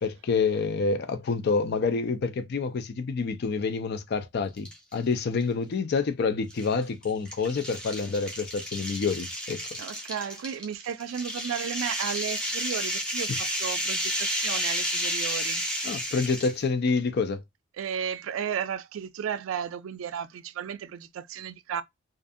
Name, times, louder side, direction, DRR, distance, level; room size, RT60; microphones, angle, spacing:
voice 1, 0.0-9.6 15.8-17.4, left 4 dB, 55° left, 0.4 m, -27 dB
sound 1, 4.6-5.0 5.4-5.5 6.5-16.6, equal, 5° left, 0.7 m, -32 dB
voice 2, 9.8-15.6 17.8-21.8, right 8 dB, 90° right, 0.3 m, -34 dB
2.4 x 2.4 x 2.5 m
head